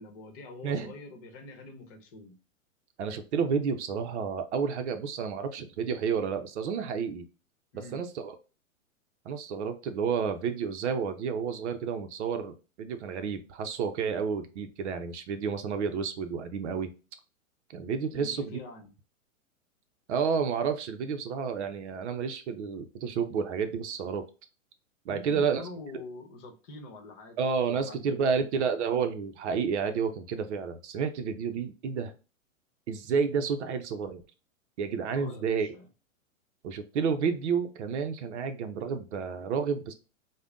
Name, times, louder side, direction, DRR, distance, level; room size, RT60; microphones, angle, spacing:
voice 1, 0.0-2.3 7.7-8.0 18.1-18.9 25.1-27.4 27.7-28.5 35.1-35.9, left 2 dB, 40° left, 4 dB, 1.0 m, -45 dB
voice 2, 3.0-7.2 7.9-8.4 9.3-16.9 17.7-18.6 20.1-24.2 25.1-25.6 27.4-32.1 32.9-34.2 34.8-35.7 36.6-39.9, right 6 dB, 55° right, 8 dB, 0.6 m, -30 dB
4.9 x 2.2 x 2.4 m, 0.33 s
hypercardioid pair, 125°, 42 cm